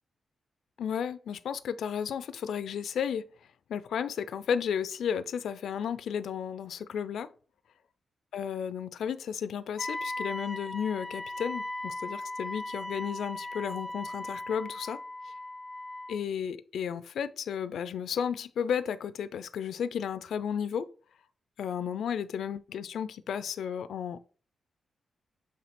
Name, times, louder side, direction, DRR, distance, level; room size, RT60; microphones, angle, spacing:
voice 1, 0.8-3.2 3.7-7.3 8.3-15.0 16.1-20.9 21.6-24.2, left 8 dB, 85° left, 0.5 m, -33 dB
Wind instrument woodwind instrument, 9.8-16.2, left 2 dB, 20° left, 0.3 m, -38 dB
7.3 x 3.2 x 4.3 m
cardioid pair, 100°, 0 cm